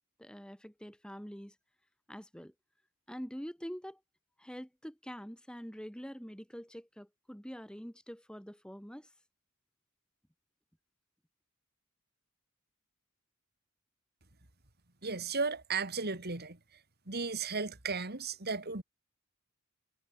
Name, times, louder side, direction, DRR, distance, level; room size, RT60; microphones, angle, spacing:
voice 1, 0.2-1.5 2.1-2.5 3.1-4.0 4.4-9.1, equal, 5° left, 4.3 m, -45 dB
voice 2, 15.0-16.6 17.1-18.8, right 4 dB, 50° right, 3.0 m, -35 dB
head